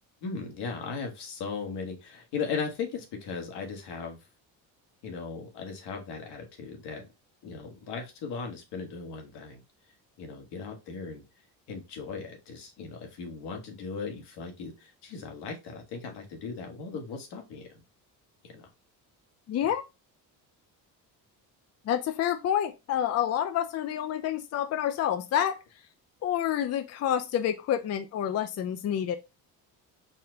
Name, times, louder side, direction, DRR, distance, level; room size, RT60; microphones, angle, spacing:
voice 1, 0.2-4.2 5.0-7.1 7.4-9.6 10.2-11.2 11.7-17.7 18.4-18.7 19.6-19.7, left 5 dB, 80° left, 1.4 m, -37 dB
voice 2, 19.5-19.8 21.9-25.6 26.2-29.2, left 10 dB, 40° left, 0.4 m, -28 dB
4.2 x 2.2 x 3.8 m
cardioid pair, 110°, 39 cm